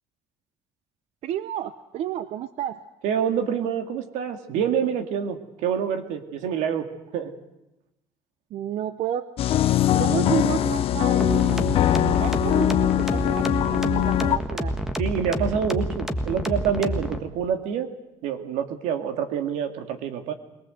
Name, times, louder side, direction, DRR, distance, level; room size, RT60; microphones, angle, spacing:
voice 1, 1.2-2.9 8.5-9.3 9.6-9.7 9.9-14.7, right 10 dB, 60° right, 13 dB, 0.8 m, -31 dB
voice 2, 3.0-7.3 15.0-17.9 18.2-20.3, right 8 dB, 85° right, 7 dB, 2.3 m, -27 dB
sound 1, 9.4-14.4, left 12 dB, 50° left, 0.8 m, -22 dB
sound 2, 11.2-17.2, equal, 5° right, 1.5 m, -28 dB
22.5 x 19.0 x 7.9 m, 0.94 s
cardioid pair, 140°, 12 cm